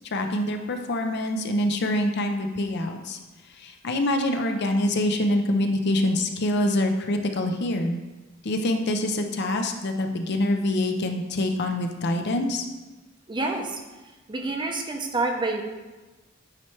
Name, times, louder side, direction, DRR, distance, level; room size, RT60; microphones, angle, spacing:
voice 1, 0.1-3.2 3.6-8.0 8.4-12.6, left 1 dB, 55° left, 5 dB, 0.6 m, -25 dB
voice 2, 13.3-13.8 14.3-15.6, right 2 dB, 25° right, 3 dB, 0.6 m, -27 dB
8.7 x 3.2 x 4.5 m, 1.2 s
head